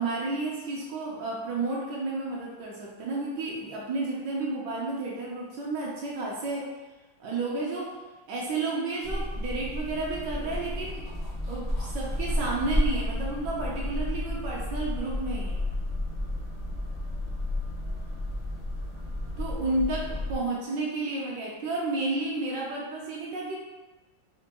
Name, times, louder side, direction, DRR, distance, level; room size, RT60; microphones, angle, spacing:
voice 1, 0.0-6.7 7.2-7.9 8.3-11.0 11.5-15.6 19.4-23.6, right 3 dB, 75° right, -4 dB, 1.2 m, -31 dB
sound 1, 9.0-20.4, left 1 dB, 70° left, 0.3 m, -32 dB
4.3 x 2.2 x 2.9 m, 1.2 s
omnidirectional pair, 2.1 m